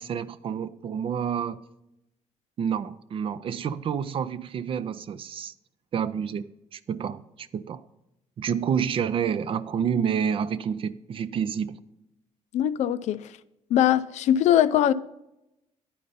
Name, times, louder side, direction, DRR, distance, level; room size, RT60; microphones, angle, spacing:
voice 1, 0.0-1.6 2.6-5.5 5.9-7.8 8.4-11.8, right 7 dB, 50° right, 0.4 m, -29 dB
voice 2, 12.5-13.3 13.7-14.9, left 11 dB, 75° left, 0.4 m, -21 dB
10.0 x 5.3 x 5.4 m
cardioid pair, 115°, 12 cm